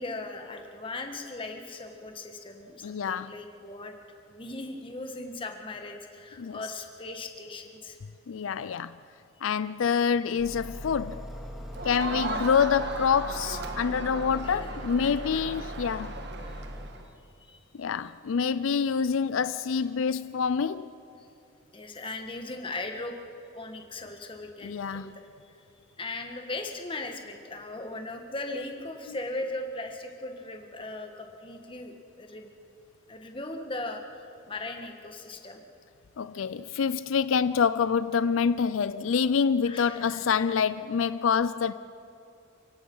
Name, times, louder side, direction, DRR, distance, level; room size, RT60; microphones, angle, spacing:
voice 1, 0.0-3.9 4.3-8.0 12.0-12.3 14.4-14.7 15.0-15.4 16.4-16.6 17.4-17.8 21.2-21.3 21.7-23.2 23.5-25.6 26.0-32.5 33.1-35.6 39.6-40.2 40.5-40.6, left 2 dB, 25° left, 1.6 m, -38 dB
voice 2, 2.8-3.3 6.4-6.6 8.3-8.9 9.4-11.2 11.8-16.2 17.8-20.9 24.6-25.1 29.1-29.2 36.2-41.7, left 6 dB, 85° left, 0.4 m, -26 dB
sound 1, 10.4-16.9, equal, ahead, 2.1 m, -40 dB
Crowd, 11.7-17.1, right 3 dB, 55° right, 1.4 m, -37 dB
29.5 x 17.5 x 5.5 m
head